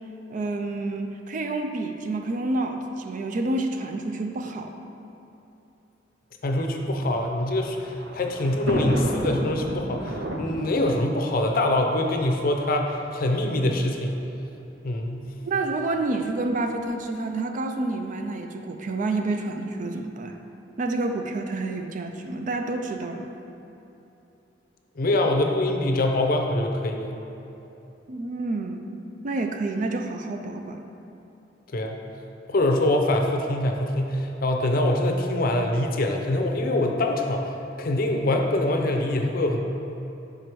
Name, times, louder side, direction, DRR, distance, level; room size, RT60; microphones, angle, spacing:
voice 1, 0.3-4.7 15.5-20.4 20.8-23.3 28.1-28.8 29.2-30.8, right 2 dB, 45° right, 5 dB, 0.4 m, -29 dB
voice 2, 6.4-14.2 14.8-15.3 25.0-27.2 31.7-32.0 32.5-37.4 37.8-39.6, left 1 dB, 55° left, 3 dB, 0.5 m, -24 dB
Thunder, 7.2-12.5 13.4-13.5 13.7-13.8 14.9-15.2, equal, 85° right, 0.7 m, -32 dB
5.0 x 4.8 x 4.5 m, 3.0 s
head